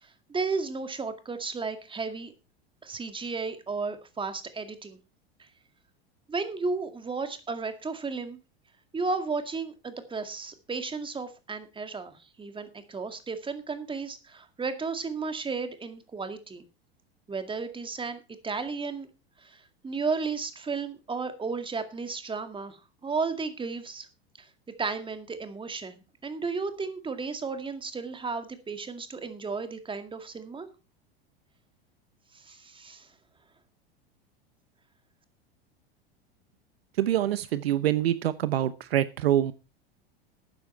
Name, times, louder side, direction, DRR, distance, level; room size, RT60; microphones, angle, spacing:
voice 1, 0.0-2.3 2.8-5.0 5.4-5.5 6.3-8.4 8.9-16.6 17.3-19.1 19.4-24.1 24.4-24.5 24.8-30.7 32.3-33.1, right 4 dB, 15° right, 9 dB, 2.1 m, -34 dB
voice 2, 37.0-39.5, right 12 dB, 75° right, 15 dB, 0.9 m, -25 dB
12.5 x 9.5 x 4.5 m, 0.29 s
hypercardioid pair, 90°, 31 cm